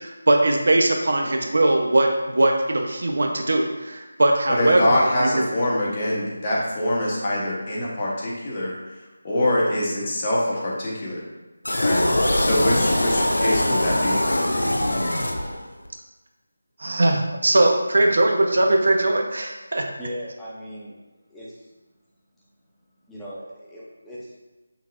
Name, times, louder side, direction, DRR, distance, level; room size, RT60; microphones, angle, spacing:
voice 1, 0.0-4.8 5.2-5.4 16.8-19.8, right 2 dB, 65° right, 3 dB, 0.5 m, -20 dB
voice 2, 4.5-9.0 9.2-11.2 11.8-12.0 12.4-14.2, left 1 dB, 35° left, -5 dB, 1.1 m, -24 dB
sound 1, 11.6-15.9, left 1 dB, 75° left, 0.6 m, -22 dB
voice 3, 19.7-20.9 21.3-21.7 23.1-24.4, equal, 5° left, -9 dB, 0.7 m, -38 dB
5.2 x 2.8 x 2.4 m, 1.2 s
figure-of-eight pair, 160°, 0 cm